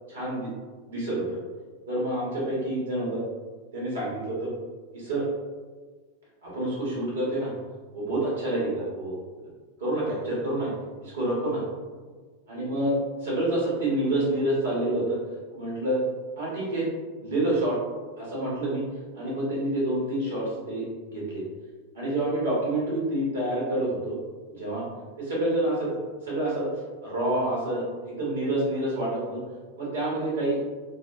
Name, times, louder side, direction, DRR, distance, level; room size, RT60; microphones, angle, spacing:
voice 1, 0.1-0.5 0.8-1.4 1.9-3.2 3.7-4.5 4.9-5.2 6.4-7.5 7.9-9.2 9.8-10.7 11.0-11.6 12.5-15.2 15.5-16.0 16.4-16.9 17.2-17.8 18.2-18.8 19.1-21.4 21.9-24.2 24.5-24.8 25.2-26.7 27.0-29.4 29.8-30.6, right 1 dB, 70° right, -6 dB, 0.8 m, -28 dB
2.6 x 2.1 x 2.4 m, 1.4 s
figure-of-eight pair, 90°, 0 cm